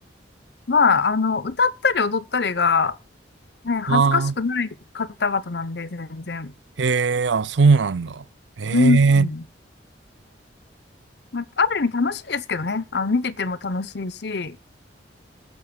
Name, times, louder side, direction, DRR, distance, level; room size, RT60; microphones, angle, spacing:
voice 1, 0.7-3.0 3.6-6.5 8.7-9.4 11.3-14.6, left 4 dB, 60° left, 0.8 m, -23 dB
voice 2, 3.9-4.3 6.8-8.2 8.6-9.3, right 4 dB, 70° right, 0.5 m, -19 dB
20.0 x 10.5 x 2.3 m
head